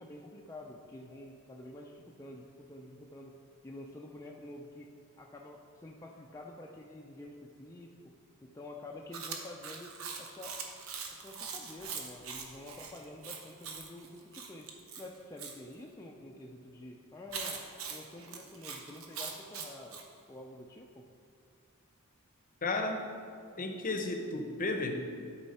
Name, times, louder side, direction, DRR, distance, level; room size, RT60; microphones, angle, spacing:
voice 1, 0.0-3.4 3.6-8.1 8.4-10.6 11.2-14.7 15.0-17.6 17.9-20.0 20.3-21.1, left 1 dB, 15° left, -1 dB, 0.4 m, -48 dB
Chewing mastication, 9.1-15.6 17.3-20.1, right 5 dB, 70° right, 0.9 m, -42 dB
voice 2, 22.6-23.1 23.6-24.9, left 2 dB, 40° left, 5 dB, 0.7 m, -33 dB
12.0 x 4.6 x 4.2 m, 2.5 s
head